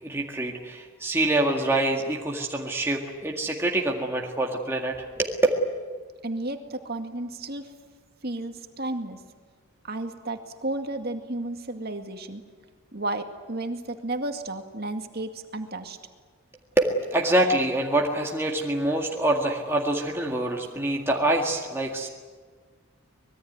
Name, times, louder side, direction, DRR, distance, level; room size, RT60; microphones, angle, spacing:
voice 1, 0.0-5.4 16.8-22.1, right 1 dB, 10° right, -1 dB, 1.9 m, -25 dB
voice 2, 6.2-7.7 8.2-9.2 9.8-12.4 12.9-16.0, right 2 dB, 50° right, 6 dB, 2.2 m, -33 dB
25.0 x 21.0 x 9.5 m, 1.5 s
head